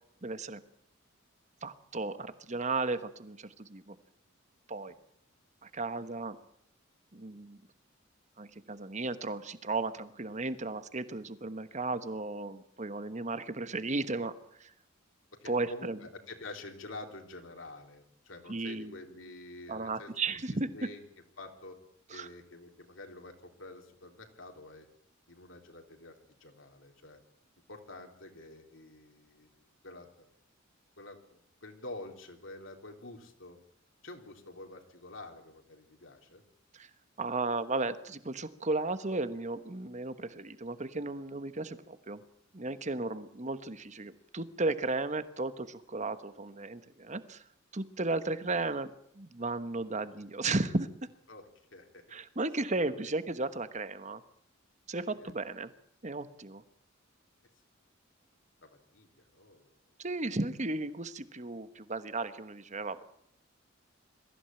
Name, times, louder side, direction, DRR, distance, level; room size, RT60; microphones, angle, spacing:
voice 1, 0.2-0.6 1.6-4.0 4.7-4.9 5.6-6.4 7.1-7.6 8.4-14.3 14.6-14.7 15.4-16.0 18.5-19.0 19.7-20.7 22.1-22.3 36.7-36.9 37.2-42.2 42.5-47.4 47.7-50.9 52.1-54.2 54.9-55.7 56.0-56.6 60.0-63.0, right 3 dB, 35° right, 12 dB, 1.2 m, -35 dB
voice 2, 15.4-20.1 20.5-21.0 21.4-21.8 22.1-24.9 25.3-27.2 27.7-30.3 31.0-33.6 34.0-36.4 51.3-52.0 52.7-53.1 55.1-55.3 58.6-59.7, left 2 dB, 65° left, 3 dB, 3.4 m, -48 dB
22.5 x 15.0 x 9.0 m, 0.72 s
head